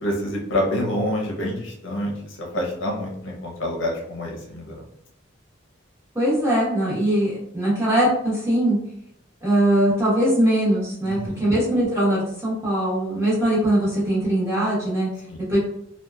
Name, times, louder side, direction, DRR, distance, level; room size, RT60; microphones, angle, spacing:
voice 1, 0.0-4.8 11.1-11.4 15.3-15.4, left 1 dB, 70° left, -1 dB, 0.7 m, -27 dB
voice 2, 6.1-8.8 9.4-15.1 15.5-15.6, right 1 dB, 15° right, -8 dB, 1.0 m, -21 dB
2.8 x 2.2 x 2.3 m, 0.74 s
head